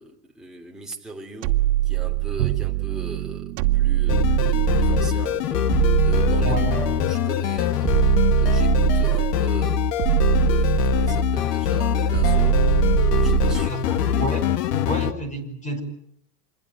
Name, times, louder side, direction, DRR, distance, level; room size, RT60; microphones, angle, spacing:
voice 1, 0.0-8.1 8.4-9.9 10.5-12.7 13.1-14.2, right 2 dB, ahead, 3.4 m, -39 dB
sound 1, 1.4-2.7 3.6-5.2 5.7-7.1 7.8-9.5 10.0-11.4 12.1-13.7, right 18 dB, 50° right, 2.4 m, -22 dB
Bowed string instrument, 2.4-8.9, right 17 dB, 75° right, 1.4 m, -33 dB
sound 2, 4.1-15.1, left 8 dB, 70° left, 2.0 m, -23 dB
voice 2, 6.4-6.9 13.7-14.5 14.9-15.8, right 1 dB, 15° left, 5.5 m, -30 dB
27.0 x 21.5 x 9.2 m
supercardioid pair, 150°, 49 cm